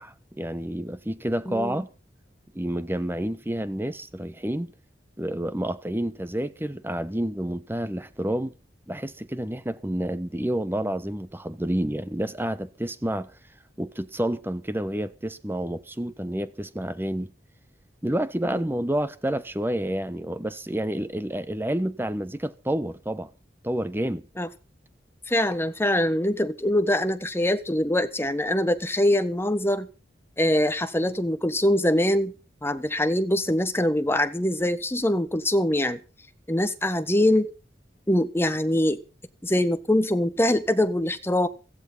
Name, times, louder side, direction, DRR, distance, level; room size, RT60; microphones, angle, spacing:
voice 1, 0.0-1.9 2.5-4.7 5.2-8.5 8.9-13.3 13.8-17.3 18.0-23.3 23.6-24.3, right 1 dB, 10° right, 1.1 m, -29 dB
voice 2, 1.5-1.8 18.4-18.6 24.4-24.5 25.3-29.9 30.4-32.3 32.6-36.0 36.5-37.5 38.1-39.0 39.4-41.5, left 1 dB, 15° left, 1.4 m, -23 dB
16.5 x 15.0 x 4.1 m
head